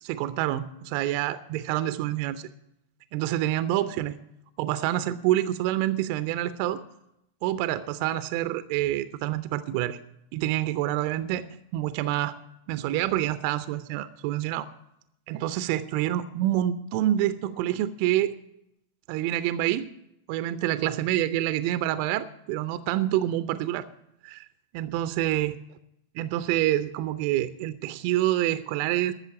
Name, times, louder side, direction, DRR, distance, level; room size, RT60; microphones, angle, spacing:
voice 1, 0.0-2.5 3.1-4.2 4.6-6.8 7.4-10.0 10.3-11.5 11.7-12.4 12.7-14.7 15.3-18.3 19.1-19.9 20.3-23.9 24.2-24.5 24.7-25.5 26.1-29.1, right 13 dB, 45° right, 14 dB, 0.6 m, -27 dB
13.0 x 6.9 x 9.6 m, 0.81 s
figure-of-eight pair, 90°, 0 cm